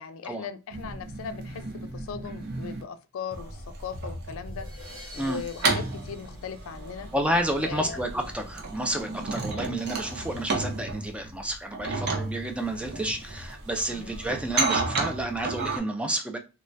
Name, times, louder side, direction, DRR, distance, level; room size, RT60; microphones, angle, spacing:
voice 1, 0.0-4.7 5.1-7.1 7.6-8.0 11.8-12.1 13.9-14.1, left 6 dB, 75° left, 0.3 m, -39 dB
sound 1, 0.7-2.8 3.3-15.8, right 3 dB, 50° right, 0.6 m, -33 dB
sound 2, 4.4-7.3, left 1 dB, 85° right, 1.1 m, -49 dB
sound 3, 5.2-8.9, left 1 dB, 30° right, 1.1 m, -49 dB
voice 2, 7.1-16.4, right 1 dB, 5° right, 0.4 m, -30 dB
2.6 x 2.2 x 3.2 m
head